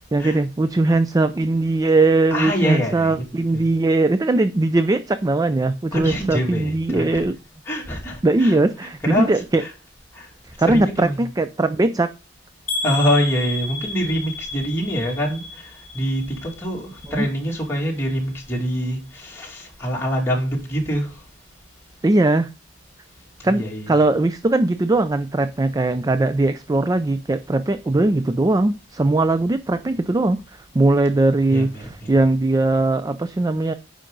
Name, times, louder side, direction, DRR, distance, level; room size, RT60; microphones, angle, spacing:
voice 1, 0.1-7.4 8.2-9.6 10.6-12.1 17.2-17.3 22.0-22.5 23.4-33.7, right 2 dB, 20° right, 0.4 m, -20 dB
voice 2, 2.3-3.2 3.5-3.6 5.9-7.2 7.7-8.6 9.0-9.3 9.6-9.7 10.1-10.3 10.6-11.2 12.8-21.1 23.4-23.9 31.5-32.1, equal, 15° left, 2.4 m, -25 dB
sound 1, 12.7-16.7 17.0-17.6 18.0-18.2 18.5-18.6, left 3 dB, 40° left, 2.2 m, -32 dB
9.9 x 5.1 x 3.8 m
head